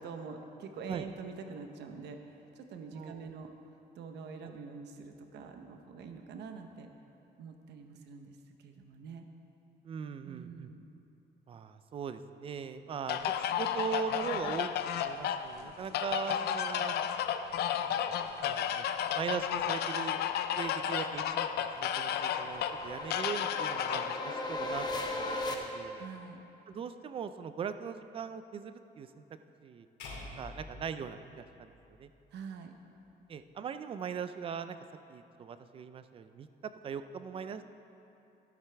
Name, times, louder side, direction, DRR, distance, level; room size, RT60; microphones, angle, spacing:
voice 1, 0.0-3.5 3.9-6.9 7.4-9.3 10.2-10.9 25.9-26.4 32.3-32.7, right 5 dB, 75° right, 5 dB, 0.9 m, -45 dB
voice 2, 9.8-10.7 11.5-16.9 17.7-18.9 19.1-20.2 20.6-21.5 21.8-26.0 26.7-29.2 29.6-29.9 30.4-31.7 32.0-32.1 33.3-34.8 35.1-36.5 36.8-37.6, right 6 dB, 30° right, 11 dB, 0.4 m, -40 dB
sound 1, 13.1-24.2, left 9 dB, 70° left, 0.5 m, -33 dB
sound 2, 19.0-25.5, left 2 dB, 25° left, 0.8 m, -39 dB
sound 3, 30.0-32.3, left 2 dB, 85° left, 2.3 m, -47 dB
13.0 x 11.5 x 3.4 m, 2.8 s
cardioid pair, 180°, 18 cm